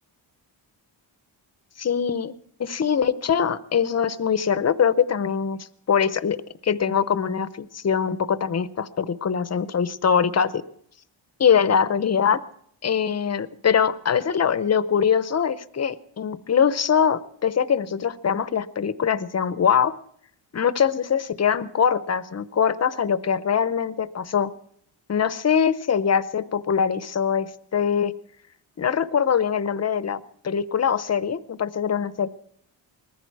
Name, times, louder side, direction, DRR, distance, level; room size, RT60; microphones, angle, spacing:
voice 1, 1.8-2.3 2.6-5.6 5.9-6.4 6.6-10.6 11.4-12.4 12.8-19.9 20.5-24.5 25.1-28.1 28.8-32.3, left 7 dB, 35° left, 14 dB, 0.7 m, -23 dB
21.0 x 14.5 x 4.7 m, 0.65 s
wide cardioid pair, 165°, 47 cm